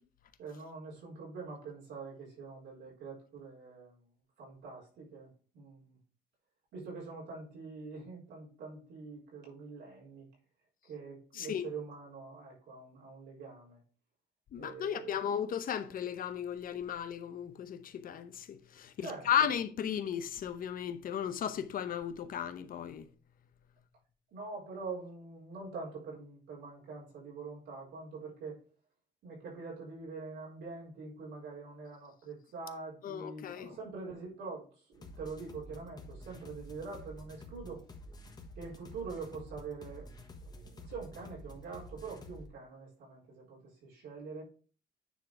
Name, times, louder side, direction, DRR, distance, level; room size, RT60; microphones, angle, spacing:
voice 1, 0.4-4.0 4.4-6.0 6.7-10.3 10.9-13.8 14.6-15.2 19.0-19.5 24.3-28.6 29.2-37.8 38.6-40.1 40.4-44.4, right 4 dB, 90° right, 4.3 m, -45 dB
voice 2, 11.3-11.6 14.5-23.1 33.0-33.7, left 9 dB, 55° left, 0.8 m, -35 dB
sound 1, 34.9-42.5, left 1 dB, 20° left, 1.3 m, -50 dB
9.4 x 4.0 x 4.7 m
cardioid pair, 140°, 18 cm